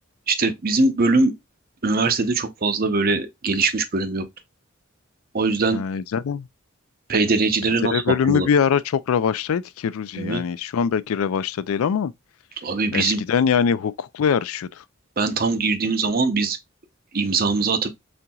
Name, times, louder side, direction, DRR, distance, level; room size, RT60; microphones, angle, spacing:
voice 1, 0.3-1.3 1.8-4.3 5.3-5.8 7.1-8.5 10.2-10.4 12.6-13.2 15.2-16.6 17.1-17.9, right 3 dB, 45° right, 0.7 m, -21 dB
voice 2, 5.7-6.5 7.9-12.1 12.9-14.7, left 7 dB, 85° left, 0.4 m, -22 dB
4.3 x 3.9 x 2.3 m
head